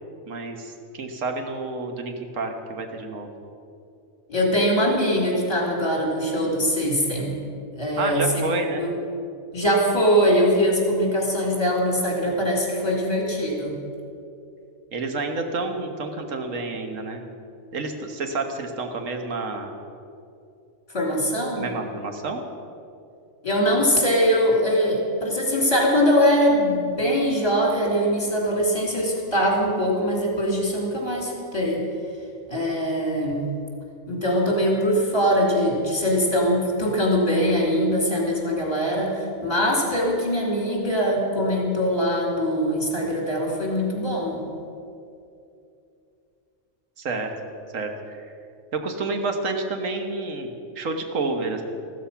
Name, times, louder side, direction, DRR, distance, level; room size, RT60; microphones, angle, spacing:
voice 1, 0.3-3.3 8.0-8.9 14.9-17.2 17.7-19.7 21.6-22.4 47.0-47.3 47.7-48.3 48.7-51.6, right 3 dB, 85° right, 4 dB, 1.6 m, -29 dB
voice 2, 4.3-7.4 7.7-8.4 8.8-8.9 9.5-13.8 20.9-21.6 23.4-31.8 32.5-33.5 34.1-44.4, equal, 30° left, -2 dB, 3.2 m, -22 dB
14.0 x 13.0 x 5.7 m, 2.6 s
omnidirectional pair, 1.3 m